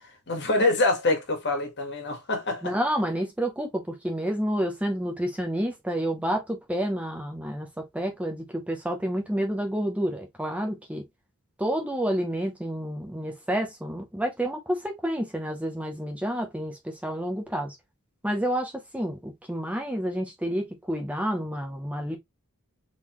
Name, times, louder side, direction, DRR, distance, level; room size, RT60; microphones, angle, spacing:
voice 1, 0.3-2.7, left 2 dB, 50° left, 1.7 m, -25 dB
voice 2, 2.6-11.0 11.6-17.7 18.2-22.2, equal, 5° right, 0.8 m, -29 dB
3.9 x 3.7 x 3.0 m
head